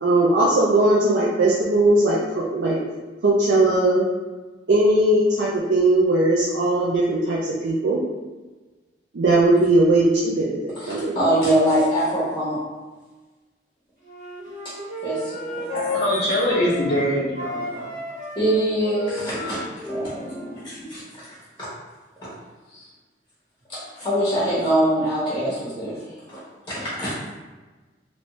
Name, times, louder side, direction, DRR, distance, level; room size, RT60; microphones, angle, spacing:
voice 1, 0.0-2.8 3.2-4.1 4.7-8.0 9.1-11.1, right 2 dB, 75° right, -5 dB, 0.5 m, -19 dB
voice 2, 10.8-12.6 15.0-16.0 18.3-19.6 19.9-21.2 21.6-21.7 22.2-22.3 22.7-22.9 23.7-26.0 26.3-26.4 26.7-27.3, right 1 dB, 15° left, -11 dB, 1.2 m, -24 dB
Wind instrument woodwind instrument, 14.0-17.1 17.3-20.7, left 2 dB, 45° right, 1.3 m, -33 dB
voice 3, 15.9-17.9, equal, 55° left, -10 dB, 0.9 m, -23 dB
3.1 x 2.7 x 3.1 m, 1.3 s
head